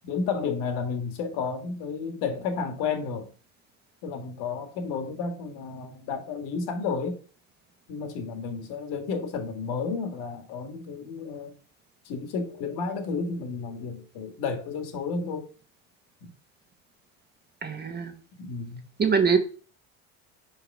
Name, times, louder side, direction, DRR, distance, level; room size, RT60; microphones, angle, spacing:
voice 1, 0.0-3.3 4.0-7.2 7.9-11.5 12.1-15.5 16.2-16.3 18.4-18.8, left 5 dB, 70° left, 1.8 m, -32 dB
voice 2, 17.6-18.1 19.0-19.4, right 6 dB, 25° right, 1.2 m, -23 dB
4.9 x 4.9 x 4.7 m
supercardioid pair, 90°, 40 cm